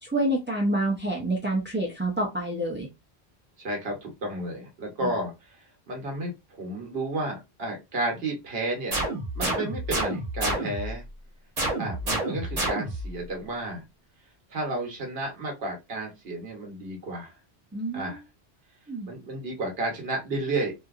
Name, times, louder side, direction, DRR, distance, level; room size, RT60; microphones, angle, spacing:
voice 1, 0.0-2.9 17.7-18.2 18.9-19.1, right 1 dB, 15° right, -4 dB, 0.4 m, -27 dB
voice 2, 3.6-9.0 9.3-11.0 11.8-13.8 14.5-17.3 17.9-18.2 19.1-20.7, right 2 dB, 65° right, 1 dB, 1.1 m, -32 dB
sound 1, 8.9-11.0 11.6-13.1, right 1 dB, 40° right, 1.1 m, -29 dB
2.8 x 2.6 x 2.3 m, 0.24 s
omnidirectional pair, 1.1 m